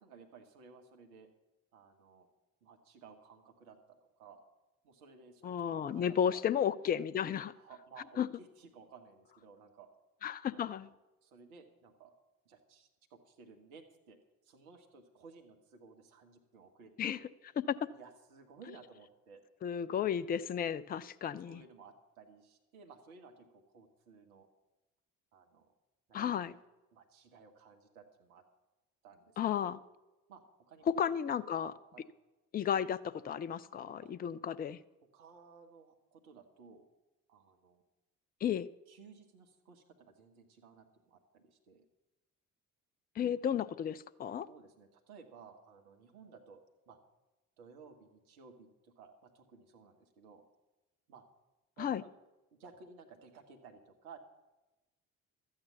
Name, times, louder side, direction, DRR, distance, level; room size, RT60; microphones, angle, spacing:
voice 1, 0.0-1.3 1.7-2.3 2.6-4.4 4.8-6.0 6.3-6.4 7.5-9.9 10.5-11.0 11.2-12.1 12.4-14.2 14.4-16.9 17.2-17.3 17.9-19.4 21.4-24.5 25.3-25.7 26.1-26.2 26.4-26.6 26.9-28.4 29.0-29.8 30.3-30.9 31.6-32.1 34.0-34.1 35.1-36.9 37.3-37.8 38.9-41.8 44.5-46.6 46.9-47.0 47.6-50.4 51.1-51.3 51.8-52.1 52.5-54.2, right 5 dB, 70° right, 4 dB, 1.7 m, -57 dB
voice 2, 5.4-7.5 8.2-8.3 10.2-10.9 17.0-17.2 17.7-17.8 19.6-21.6 26.1-26.5 29.4-29.8 30.9-31.7 32.5-34.8 38.4-38.7 43.2-44.5 51.8-52.0, left 8 dB, 20° left, 16 dB, 0.5 m, -33 dB
13.0 x 8.8 x 7.0 m, 1.1 s
figure-of-eight pair, 50°, 45 cm